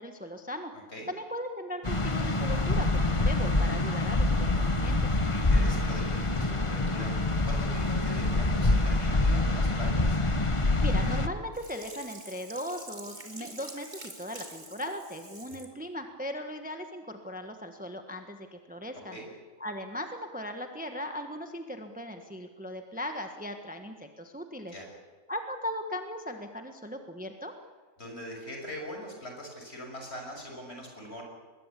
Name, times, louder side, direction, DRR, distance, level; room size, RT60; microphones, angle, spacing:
voice 1, 0.0-0.7 1.1-5.1 10.8-13.9 14.2-19.2 19.6-24.7 25.3-27.5, equal, 5° right, 5 dB, 1.3 m, -38 dB
voice 2, 0.7-1.1 5.3-10.2 19.1-19.3 24.7-24.9 28.0-31.2, equal, 45° left, 1 dB, 6.7 m, -42 dB
sound 1, 1.8-11.3, left 2 dB, 25° left, 1.3 m, -26 dB
Sink (filling or washing), 11.5-15.7 16.2-16.3, right 2 dB, 30° right, 2.9 m, -46 dB
25.0 x 21.0 x 8.3 m, 1.4 s
omnidirectional pair, 1.5 m